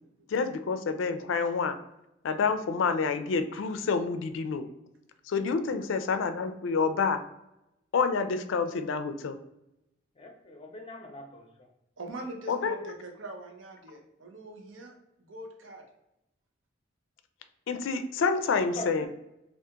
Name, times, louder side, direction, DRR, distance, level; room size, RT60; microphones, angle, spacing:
voice 1, 0.3-1.7 2.2-4.6 5.3-7.2 7.9-9.4 12.5-12.9 17.7-19.1, left 5 dB, 80° left, 9 dB, 0.4 m, -28 dB
voice 2, 10.2-11.7 18.8-19.1, left 1 dB, 30° left, 2 dB, 0.6 m, -42 dB
voice 3, 12.0-15.8, right 2 dB, 85° right, 2 dB, 0.7 m, -43 dB
2.8 x 2.5 x 3.5 m, 0.88 s
head